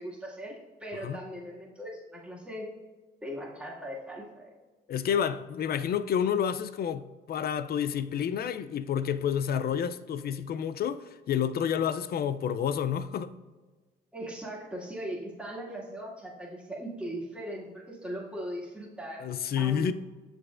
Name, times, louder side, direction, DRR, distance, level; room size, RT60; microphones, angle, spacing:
voice 1, 0.0-2.7 3.2-4.5 14.1-19.9, right 1 dB, 5° right, 1.9 m, -39 dB
voice 2, 4.9-13.3 19.2-19.9, left 8 dB, 50° left, 0.4 m, -29 dB
6.7 x 6.5 x 2.4 m
cardioid pair, 90°, 20 cm